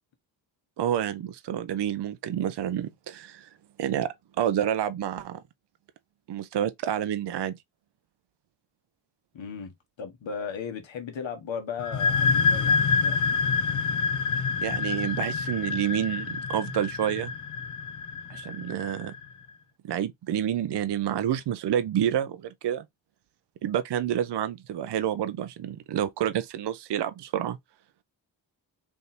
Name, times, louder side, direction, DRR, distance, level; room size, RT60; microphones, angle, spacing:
voice 1, 0.8-3.5 3.8-5.4 6.3-7.6 14.6-17.3 18.3-19.1 19.8-22.8 23.6-27.6, right 10 dB, 60° right, 0.6 m, -29 dB
voice 2, 9.3-13.2, left 6 dB, 70° left, 1.4 m, -36 dB
sound 1, 11.8-19.2, left 5 dB, 40° left, 0.6 m, -27 dB
3.5 x 2.6 x 4.1 m
cardioid pair, 50°, 47 cm